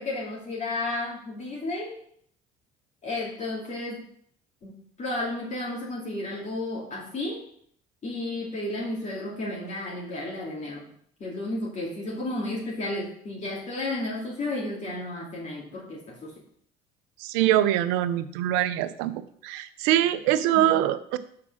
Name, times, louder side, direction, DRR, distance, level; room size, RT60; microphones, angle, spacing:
voice 1, 0.0-2.0 3.0-4.0 4.6-4.7 5.0-7.4 8.0-10.9 11.2-16.4 20.5-20.7, left 2 dB, 45° left, -4 dB, 2.6 m, -32 dB
voice 2, 17.2-19.1 19.4-21.2, right 12 dB, 80° right, 13 dB, 0.6 m, -23 dB
5.9 x 4.8 x 6.1 m, 0.63 s
supercardioid pair, 70°, 18 cm